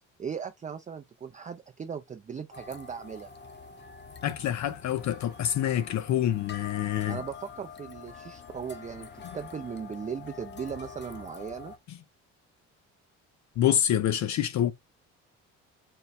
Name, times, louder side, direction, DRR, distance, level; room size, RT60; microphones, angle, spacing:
voice 1, 0.2-3.3 7.1-11.7, right 7 dB, 20° right, 0.4 m, -38 dB
sound 1, 2.5-11.8, left 5 dB, 30° left, 0.8 m, -46 dB
voice 2, 4.2-7.2 13.6-14.7, left 11 dB, 55° left, 0.5 m, -26 dB
4.4 x 2.2 x 4.1 m
supercardioid pair, 70°, 35 cm